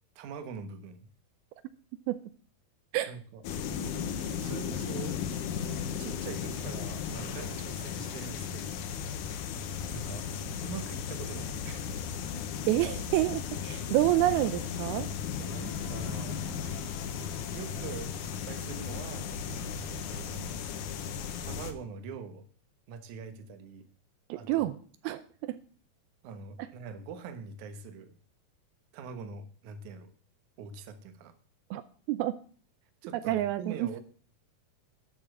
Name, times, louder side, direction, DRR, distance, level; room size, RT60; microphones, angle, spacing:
voice 1, 0.2-1.1 3.1-3.4 4.3-5.2 6.0-8.9 9.9-10.3 10.6-11.9 15.4-16.4 17.5-19.3 20.1-20.6 21.4-22.4 22.9-23.9 24.3-24.8 26.2-28.1 28.9-30.1 30.6-31.3 33.0-34.0, right 6 dB, 65° right, 9 dB, 2.3 m, -43 dB
sound 1, 3.4-21.7, left 7 dB, 70° left, 2.1 m, -36 dB
voice 2, 12.7-15.1 24.3-24.8 25.0-25.6 31.7-31.8 32.1-32.4 33.3-34.0, right 15 dB, 80° right, 12 dB, 2.5 m, -28 dB
12.5 x 6.9 x 6.0 m, 0.43 s
omnidirectional pair, 4.5 m